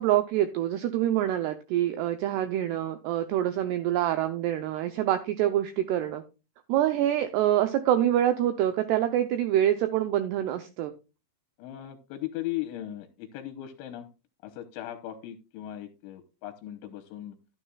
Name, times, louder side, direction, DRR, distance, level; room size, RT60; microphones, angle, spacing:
voice 1, 0.0-6.2 6.7-10.9, right 12 dB, 90° right, 9 dB, 2.3 m, -26 dB
voice 2, 11.6-14.1 14.4-17.4, left 13 dB, 85° left, 7 dB, 3.0 m, -38 dB
13.5 x 9.7 x 2.3 m, 0.30 s
omnidirectional pair, 5.6 m